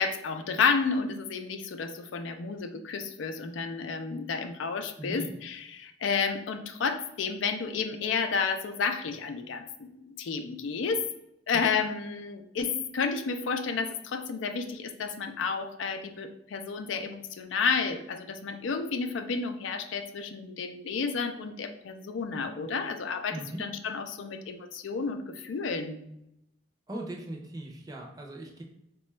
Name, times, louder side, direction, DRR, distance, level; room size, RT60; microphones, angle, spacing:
voice 1, 0.0-11.0 11.5-26.0, left 5 dB, 90° left, 8 dB, 0.4 m, -31 dB
voice 2, 5.0-5.3 11.5-11.8 23.3-23.6 26.9-28.6, right 1 dB, 20° right, 0 dB, 0.5 m, -39 dB
3.9 x 2.2 x 3.1 m, 0.84 s
head